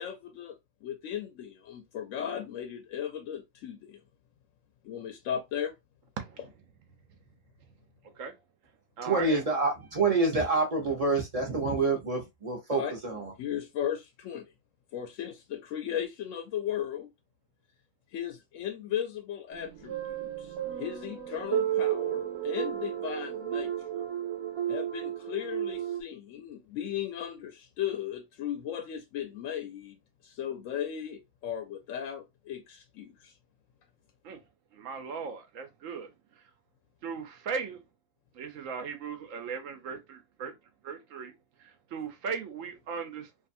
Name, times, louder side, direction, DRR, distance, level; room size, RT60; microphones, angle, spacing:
voice 1, 0.0-4.0 4.8-5.7 12.7-12.9 13.4-14.5 14.9-17.1 18.1-24.1 24.7-30.0 30.2-33.3, left 9 dB, 70° left, 0.8 m, -36 dB
voice 2, 6.2-6.5 8.0-8.3 9.0-9.4 34.2-34.4 34.7-36.4 37.0-37.8 38.3-40.5 40.8-43.3, right 6 dB, 65° right, 1.0 m, -38 dB
voice 3, 9.0-13.3, right 3 dB, 30° right, 0.7 m, -27 dB
sound 1, 19.5-26.0, right 11 dB, 90° right, 1.1 m, -33 dB
2.7 x 2.5 x 2.5 m
omnidirectional pair, 1.6 m